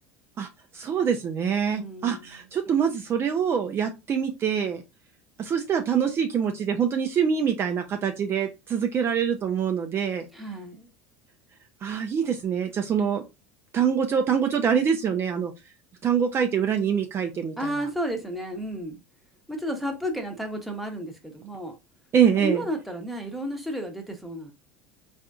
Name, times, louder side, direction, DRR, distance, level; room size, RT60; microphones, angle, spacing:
voice 1, 0.7-4.8 5.4-10.3 11.8-13.2 13.7-15.5 16.0-17.7 22.1-22.6, right 7 dB, 35° right, 0.5 m, -25 dB
voice 2, 1.7-2.4 10.3-10.9 17.6-19.0 19.5-21.7 22.4-24.5, equal, ahead, 0.9 m, -32 dB
3.6 x 2.6 x 2.3 m
hypercardioid pair, 95°, 7 cm